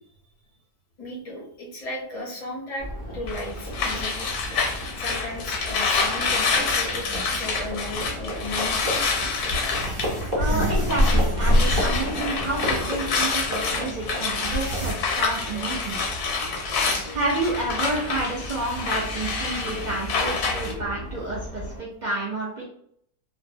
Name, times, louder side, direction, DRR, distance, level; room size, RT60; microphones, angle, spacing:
voice 1, 1.0-2.9 3.1-8.9, left 1 dB, 40° left, -3 dB, 0.5 m, -35 dB
Livestock farm animals working animals, 2.8-21.8, equal, 20° right, 0.6 m, -34 dB
sound 1, 3.3-11.2 11.5-20.7, left 4 dB, 85° left, 1.1 m, -27 dB
sound 2, 7.9-8.0 9.5-12.0 12.3-12.4 13.7-13.8 14.3-14.9, equal, 45° right, 0.9 m, -23 dB
voice 2, 10.4-16.2 17.1-22.6, right 2 dB, 75° right, -5 dB, 0.4 m, -30 dB
2.6 x 2.1 x 2.6 m, 0.66 s
omnidirectional pair, 1.6 m